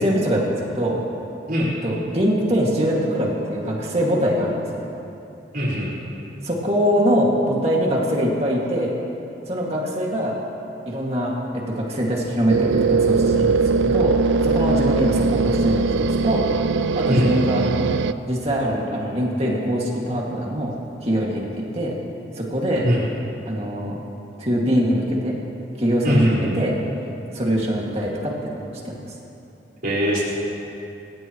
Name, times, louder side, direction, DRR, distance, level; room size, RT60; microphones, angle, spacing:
voice 1, 0.0-1.0 1.8-4.9 6.4-9.0 9.5-10.4 10.9-14.1 14.4-16.4 17.0-17.7 18.3-20.7 21.0-21.9 22.4-22.9 23.5-24.0 24.4-25.4 25.8-26.7 27.3-28.5 28.8-28.9, equal, 35° right, -3 dB, 2.2 m, -23 dB
voice 2, 5.5-5.9 17.1-17.3 22.8-23.0 26.0-26.6 29.8-30.2, equal, 55° right, -8 dB, 4.9 m, -21 dB
sound 1, 12.5-18.1, right 4 dB, 85° right, 0.5 m, -20 dB
28.0 x 16.0 x 3.1 m, 2.8 s
head